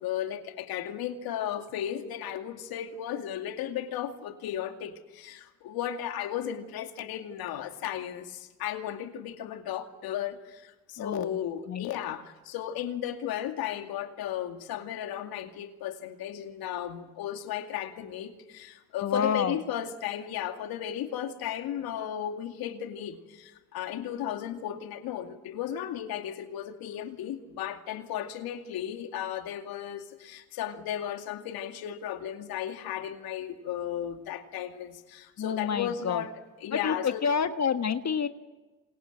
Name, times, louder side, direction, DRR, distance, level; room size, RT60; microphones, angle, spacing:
voice 1, 0.0-36.3 36.6-37.2, left 10 dB, 70° left, 6 dB, 2.4 m, -35 dB
voice 2, 11.0-11.4 11.7-11.9 19.0-19.6 35.4-36.2 36.7-38.3, left 6 dB, 45° left, 9 dB, 1.5 m, -28 dB
28.0 x 27.0 x 7.8 m, 1.2 s
hypercardioid pair, 55°, 38 cm